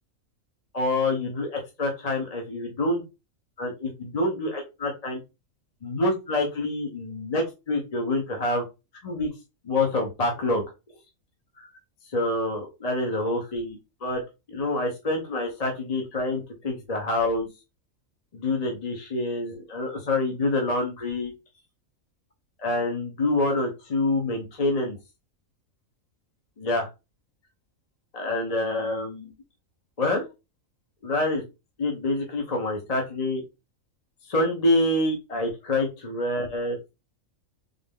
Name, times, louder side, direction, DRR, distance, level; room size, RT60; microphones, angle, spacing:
voice 1, 0.7-3.0 3.6-5.2 5.8-8.6 9.0-9.3 9.6-10.6 12.1-14.2 14.5-17.5 18.3-21.3 22.6-25.0 26.6-26.9 28.1-29.3 30.0-30.2 31.0-31.4 31.8-33.4 34.3-36.8, left 2 dB, 35° left, 1 dB, 0.8 m, -26 dB
3.7 x 2.6 x 3.6 m, 0.26 s
omnidirectional pair, 1.5 m